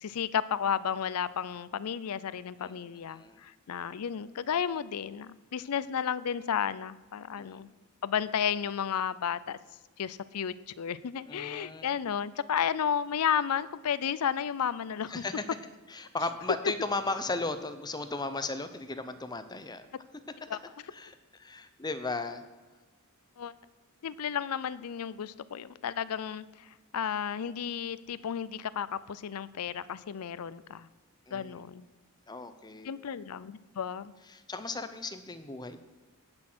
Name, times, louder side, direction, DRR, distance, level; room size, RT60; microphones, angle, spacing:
voice 1, 0.0-7.7 8.0-9.6 10.0-15.2 20.5-20.6 23.4-23.5 24.0-30.9 31.3-31.9 32.8-34.1, left 8 dB, 80° left, 16 dB, 0.5 m, -33 dB
voice 2, 3.1-3.4 7.4-7.7 11.3-11.9 15.1-15.4 15.9-19.8 20.1-20.5 20.9-22.4 31.3-31.5 32.3-32.9 34.3-35.8, left 3 dB, 20° left, 10 dB, 0.6 m, -36 dB
17.5 x 6.2 x 6.1 m, 1.2 s
head